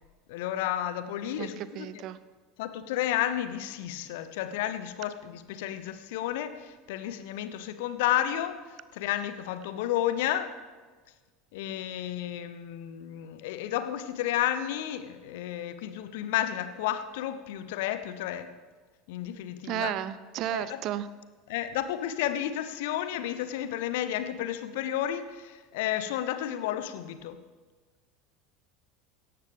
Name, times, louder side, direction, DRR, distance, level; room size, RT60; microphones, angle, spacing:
voice 1, 0.3-2.0 2.6-10.6 11.5-18.5 19.1-19.9 20.5-20.8 21.5-27.4, left 11 dB, 60° left, 11 dB, 0.9 m, -32 dB
voice 2, 1.4-2.2 19.6-21.1, right 12 dB, 45° right, 15 dB, 0.6 m, -33 dB
17.5 x 13.5 x 3.5 m, 1.4 s
figure-of-eight pair, 75°, 0 cm